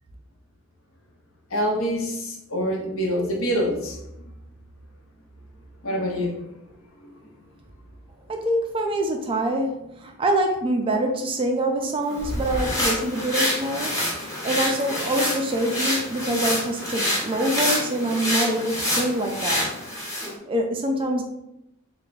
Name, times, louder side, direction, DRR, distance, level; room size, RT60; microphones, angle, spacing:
voice 1, 1.5-4.0 5.8-6.4, equal, 65° left, 0 dB, 0.8 m, -25 dB
voice 2, 8.3-19.7 20.5-21.2, right 1 dB, 25° right, 3 dB, 0.3 m, -25 dB
sound 1, 12.1-20.3, left 1 dB, 15° left, 0.8 m, -27 dB
3.3 x 2.1 x 3.9 m, 0.87 s
head